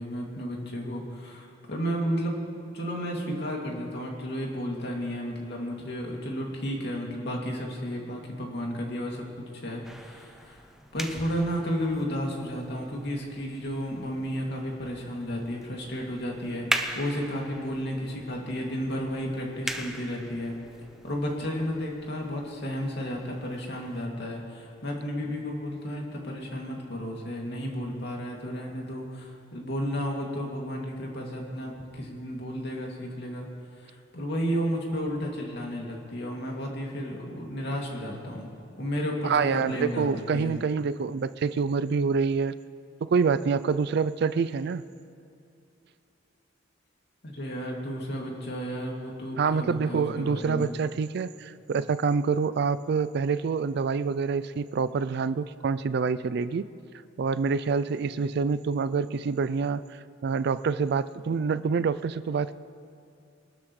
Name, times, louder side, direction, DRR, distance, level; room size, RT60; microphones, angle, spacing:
voice 1, 0.0-2.4 2.7-9.2 9.6-10.6 10.9-20.6 21.0-33.5 33.8-38.5 38.8-40.5 47.2-50.7, equal, 60° left, -1 dB, 2.5 m, -32 dB
sound 1, 9.8-24.1, right 1 dB, ahead, 0.6 m, -40 dB
voice 2, 39.2-42.6 43.0-44.8 49.4-56.6 57.2-62.5, right 5 dB, 60° right, 15 dB, 0.4 m, -26 dB
24.0 x 12.5 x 3.2 m, 2.6 s
head